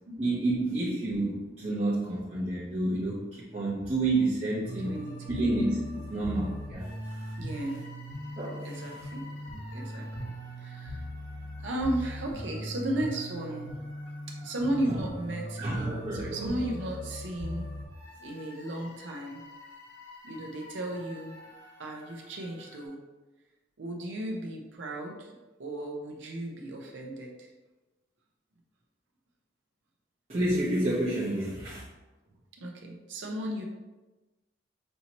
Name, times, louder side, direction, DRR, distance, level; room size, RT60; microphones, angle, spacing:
voice 1, 0.2-4.9 5.3-5.8 6.1-7.3 8.4-8.7 14.9-15.0 15.6-16.5 30.3-31.8, right 2 dB, 35° right, -10 dB, 0.9 m, -29 dB
sound 1, 4.6-22.8, equal, 60° left, 1.5 m, -41 dB
voice 2, 4.8-5.5 7.4-7.9 8.6-9.4 9.7-10.0 10.6-11.0 11.6-13.7 14.4-17.7 18.2-19.4 20.2-21.4 21.8-23.0 23.8-25.3 25.6-27.5 32.6-33.6, right 1 dB, 80° right, 0 dB, 0.7 m, -35 dB
5.4 x 2.9 x 2.9 m, 1.1 s
head